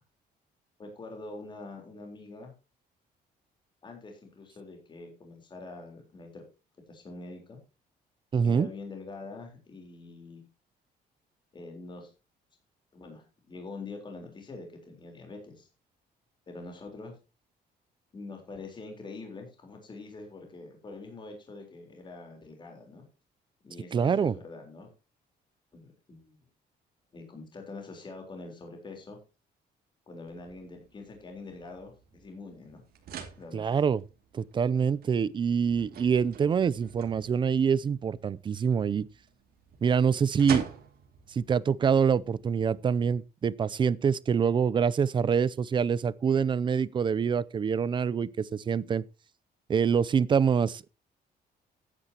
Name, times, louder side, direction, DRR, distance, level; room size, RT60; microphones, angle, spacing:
voice 1, 0.8-2.5 3.8-6.4 6.9-7.6 8.4-10.4 11.5-12.1 12.9-15.7 16.5-17.1 18.1-23.0 23.6-24.9 25.7-26.4 27.1-29.2 30.1-32.8 33.4-33.8, left 3 dB, 25° left, 3.9 m, -44 dB
voice 2, 8.3-8.7 23.9-24.3 33.5-34.0 34.3-39.1 39.8-40.7 41.3-49.0 49.7-50.9, right 6 dB, 30° right, 0.5 m, -25 dB
sound 1, 30.3-43.2, right 7 dB, 65° right, 2.5 m, -46 dB
15.0 x 9.8 x 2.9 m
cardioid pair, 160°, 17 cm